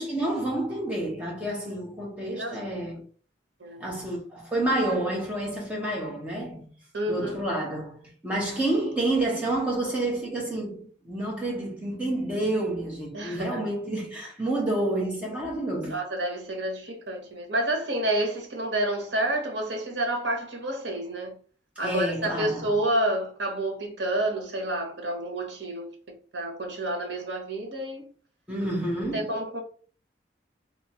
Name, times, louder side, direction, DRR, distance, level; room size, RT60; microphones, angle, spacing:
voice 1, 0.0-3.0 3.8-6.7 7.1-16.0 21.8-22.7 28.5-29.3, right 1 dB, 5° right, 1.0 m, -29 dB
voice 2, 6.9-7.3 13.1-13.6 15.9-21.3 21.8-25.9 26.3-28.0 29.1-29.6, right 1 dB, 80° right, 1.0 m, -29 dB
3.0 x 3.0 x 2.9 m
head